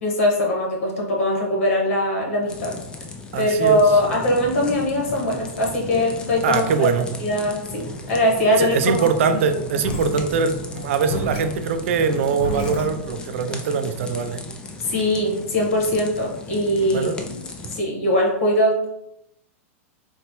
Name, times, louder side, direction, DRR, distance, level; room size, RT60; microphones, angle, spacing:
voice 1, 0.0-2.8 3.4-6.7 7.2-9.1 14.8-17.4 17.7-18.9, left 1 dB, 70° left, -1 dB, 1.2 m, -21 dB
sound 1, 2.5-17.8, left 3 dB, 10° left, 0.3 m, -37 dB
voice 2, 3.3-3.8 6.4-7.1 8.6-14.4 16.9-17.2, right 5 dB, 65° right, 8 dB, 0.4 m, -22 dB
sound 2, 3.6-12.8, right 2 dB, 15° right, 1.0 m, -39 dB
sound 3, 9.8-13.3, left 2 dB, 50° left, 0.7 m, -32 dB
4.0 x 2.2 x 3.0 m, 0.83 s
supercardioid pair, 150°, 8 cm